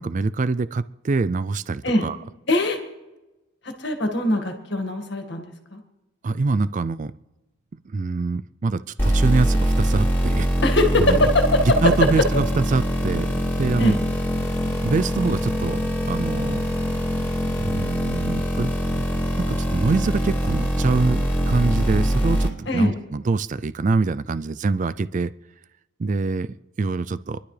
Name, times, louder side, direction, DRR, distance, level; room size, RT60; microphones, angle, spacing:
voice 1, 0.0-2.2 6.2-7.1 7.9-10.5 11.0-11.3 11.8-14.0 14.8-15.8 16.1-16.7 17.6-19.0 19.4-25.3 26.0-27.4, right 3 dB, 40° right, 15 dB, 0.4 m, -24 dB
voice 2, 2.5-2.8 3.6-5.8 10.6-11.8 12.2-12.3 13.8-14.0 22.7-23.0, left 1 dB, 60° left, 5 dB, 1.9 m, -21 dB
sound 1, 9.0-22.5, equal, 10° left, 2.8 m, -23 dB
27.0 x 11.5 x 3.3 m, 1.0 s
head